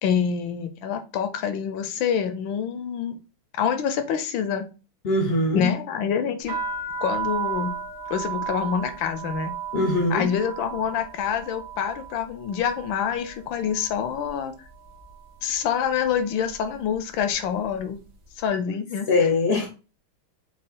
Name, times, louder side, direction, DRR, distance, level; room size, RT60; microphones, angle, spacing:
voice 1, 0.0-3.2 3.6-4.7 5.5-6.6 7.0-7.8 8.1-9.5 10.1-14.5 15.4-18.0 18.4-19.3, left 8 dB, 75° left, 1.3 m, -26 dB
voice 2, 5.0-5.7 9.7-10.3 19.1-19.7, left 2 dB, 55° left, 0.6 m, -22 dB
sound 1, 6.4-14.4 14.6-15.3 15.9-16.2 16.5-17.9, right 6 dB, 60° right, 1.6 m, -34 dB
5.1 x 2.4 x 3.6 m
omnidirectional pair, 2.3 m